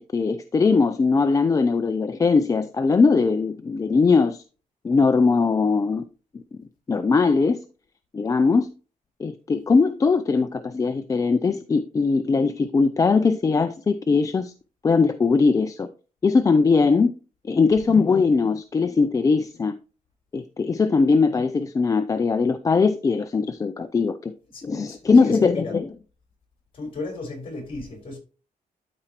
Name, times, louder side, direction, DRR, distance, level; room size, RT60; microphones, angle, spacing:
voice 1, 0.0-4.4 4.8-6.0 6.3-6.4 6.9-7.6 8.1-8.7 9.2-14.5 14.8-15.9 16.2-17.1 17.5-19.7 20.3-24.3 24.6-25.9, left 4 dB, 25° left, 0.4 m, -20 dB
voice 2, 24.5-25.7 26.7-28.2, left 2 dB, 40° left, 4.0 m, -35 dB
12.5 x 4.4 x 2.9 m
cardioid pair, 135°, 15 cm